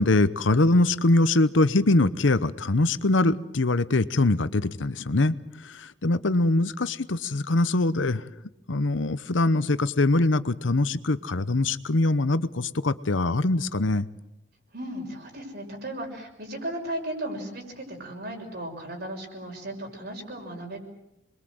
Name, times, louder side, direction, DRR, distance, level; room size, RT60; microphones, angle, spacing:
voice 1, 0.0-5.3 5.6-8.2 8.7-14.1, left 2 dB, 85° left, 14 dB, 1.0 m, -23 dB
voice 2, 14.7-20.8, right 1 dB, 60° right, 2 dB, 6.1 m, -36 dB
27.5 x 22.0 x 7.8 m, 0.84 s
head